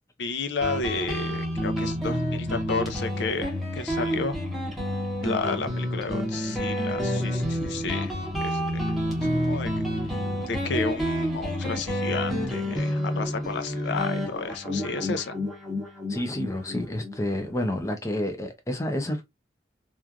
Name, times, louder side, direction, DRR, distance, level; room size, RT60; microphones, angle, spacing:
voice 1, 0.2-4.4 5.2-8.1 8.4-9.0 9.4-15.4, left 4 dB, 80° left, 0.5 m, -32 dB
Guitar, 0.6-17.8, equal, ahead, 0.9 m, -29 dB
voice 2, 16.1-19.3, left 1 dB, 15° left, 0.5 m, -29 dB
3.1 x 2.4 x 2.3 m
head